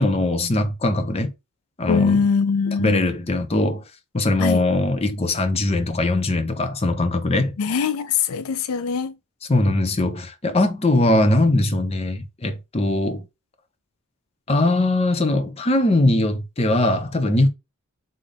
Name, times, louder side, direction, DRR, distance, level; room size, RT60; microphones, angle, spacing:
voice 1, 0.0-1.3 1.8-2.3 2.8-3.8 4.1-7.5 9.5-13.2 14.5-17.5, left 2 dB, 30° left, 0.6 m, -21 dB
voice 2, 1.9-3.0 4.4-4.6 7.6-9.1, left 5 dB, 80° left, 0.4 m, -22 dB
3.8 x 3.4 x 3.8 m
head